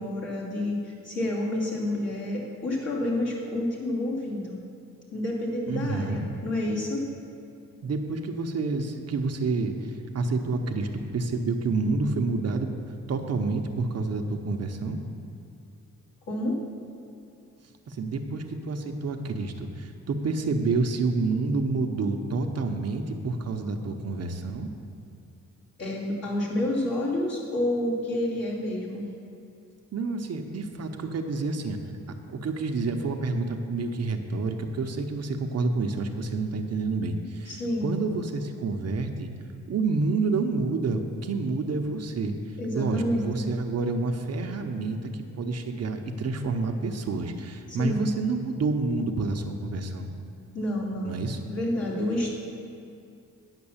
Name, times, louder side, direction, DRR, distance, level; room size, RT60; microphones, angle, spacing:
voice 1, 0.0-4.6 5.1-7.1 16.3-16.6 25.8-29.1 37.5-37.9 42.6-43.5 47.8-48.1 50.5-51.2 51.5-52.3, left 1 dB, 50° left, -5 dB, 2.8 m, -29 dB
voice 2, 5.7-6.2 7.8-12.7 13.1-15.0 17.9-24.7 29.9-31.8 32.3-39.3 39.7-45.1 45.4-50.1 51.0-51.4, right 3 dB, 55° right, 5 dB, 0.8 m, -28 dB
9.8 x 5.9 x 7.2 m, 2.5 s
cardioid pair, 85°, 31 cm